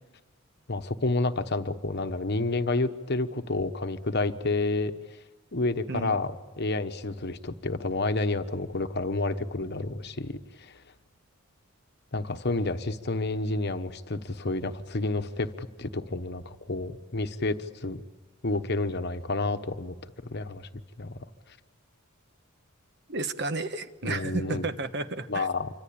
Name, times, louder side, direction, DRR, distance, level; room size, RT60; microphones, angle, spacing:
voice 1, 0.7-4.9 5.5-6.3 6.6-10.8 12.1-18.0 18.4-19.9 20.2-20.7 21.0-21.2 24.0-24.7 25.3-25.7, left 2 dB, 50° left, 8 dB, 1.1 m, -30 dB
voice 2, 5.9-6.2 23.1-25.5, right 2 dB, 50° right, 10 dB, 1.2 m, -32 dB
27.5 x 24.5 x 8.7 m, 1.3 s
head